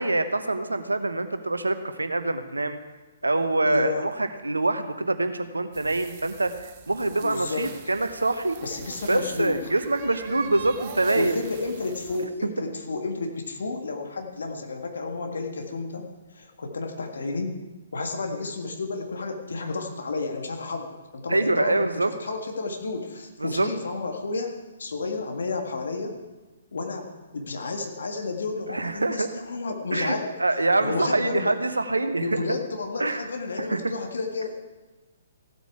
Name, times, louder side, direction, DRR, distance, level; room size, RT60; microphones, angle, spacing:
voice 1, 0.0-2.8 3.2-6.5 6.9-8.6 9.1-11.4 21.3-22.1 23.4-23.7 28.7-29.3 29.9-32.4 33.0-33.3 33.6-33.9, right 2 dB, 80° right, 10 dB, 0.9 m, -25 dB
voice 2, 3.6-4.1 7.2-7.7 8.6-9.6 11.1-16.1 16.3-17.6 17.9-26.2 26.7-30.3 30.8-31.5 32.2-34.5, left 3 dB, 65° left, 4 dB, 1.7 m, -31 dB
sound 1, 5.7-12.3, right 6 dB, 35° right, 1.1 m, -43 dB
15.5 x 8.2 x 4.7 m, 1.2 s
figure-of-eight pair, 125°, 0 cm